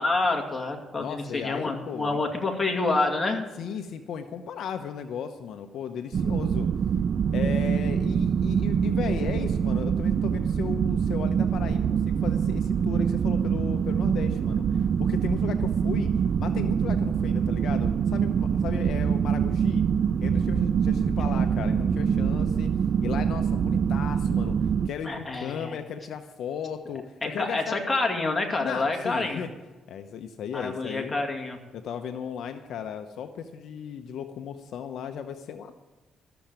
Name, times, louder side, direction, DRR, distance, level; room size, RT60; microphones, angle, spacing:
voice 1, 0.0-3.4 25.0-25.8 27.2-29.4 30.5-31.6, left 3 dB, 20° left, 2 dB, 2.4 m, -27 dB
voice 2, 1.0-2.2 3.6-6.7 7.3-16.1 16.4-19.8 20.2-22.7 23.0-24.6 24.8-27.8 28.6-29.5 29.9-31.1 31.7-35.7, left 7 dB, 70° left, 7 dB, 0.8 m, -35 dB
sound 1, 6.1-24.9, right 7 dB, 50° right, 0.4 m, -25 dB
13.5 x 7.0 x 8.9 m, 1.2 s
cardioid pair, 90°, 0 cm